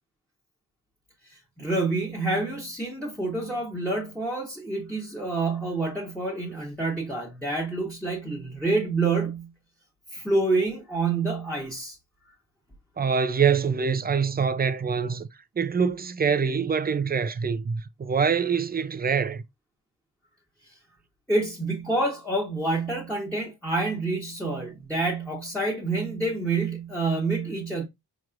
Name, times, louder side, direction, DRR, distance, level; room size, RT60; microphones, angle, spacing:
voice 1, 1.2-9.5 10.1-12.0 20.7-20.8 21.3-27.9, right 3 dB, 5° left, 1.2 m, -28 dB
voice 2, 13.0-15.3 15.6-19.4, right 6 dB, 25° right, 0.4 m, -25 dB
4.5 x 3.0 x 2.4 m
cardioid pair, 75°, 38 cm